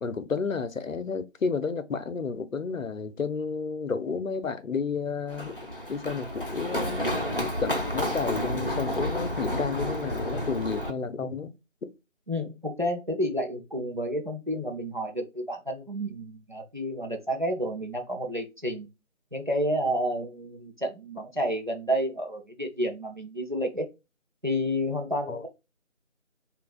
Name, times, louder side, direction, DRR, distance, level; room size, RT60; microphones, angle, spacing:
voice 1, 0.0-5.6 5.9-11.5 11.8-11.9 25.3-25.4, left 5 dB, 85° left, 0.6 m, -31 dB
Run, 5.3-10.9, equal, 45° left, 0.6 m, -30 dB
voice 2, 12.3-18.9 19.3-23.9 24.4-25.5, equal, 40° right, 0.6 m, -30 dB
5.2 x 2.3 x 2.4 m
figure-of-eight pair, 170°, 38 cm